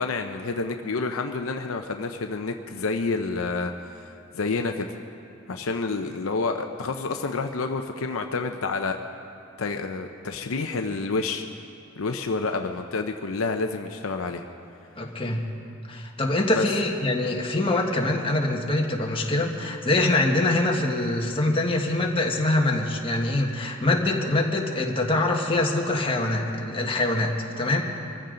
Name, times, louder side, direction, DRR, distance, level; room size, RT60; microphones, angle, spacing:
voice 1, 0.0-4.9 5.5-9.0 9.6-11.4 12.0-14.4 16.5-16.6, left 3 dB, 70° left, 5 dB, 0.7 m, -29 dB
voice 2, 15.0-15.4 15.9-27.8, left 2 dB, 25° left, 0 dB, 1.5 m, -24 dB
24.5 x 15.0 x 3.9 m, 2.6 s
head